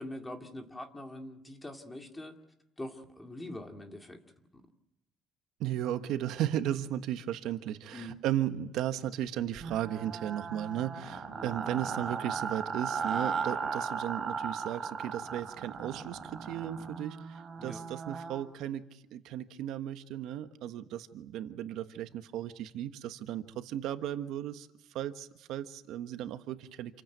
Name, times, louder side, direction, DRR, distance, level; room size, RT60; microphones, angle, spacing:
voice 1, 0.0-2.3 2.8-4.2 4.5-4.6 7.9-8.1 11.3-11.5 17.6-17.8, left 1 dB, 10° left, 4 dB, 2.2 m, -43 dB
voice 2, 5.6-24.7 24.9-27.0, right 11 dB, 70° right, 9 dB, 1.3 m, -35 dB
sound 1, 9.6-18.5, right 5 dB, 25° right, 3.4 m, -37 dB
28.5 x 15.5 x 9.3 m, 0.92 s
cardioid pair, 165°, 0 cm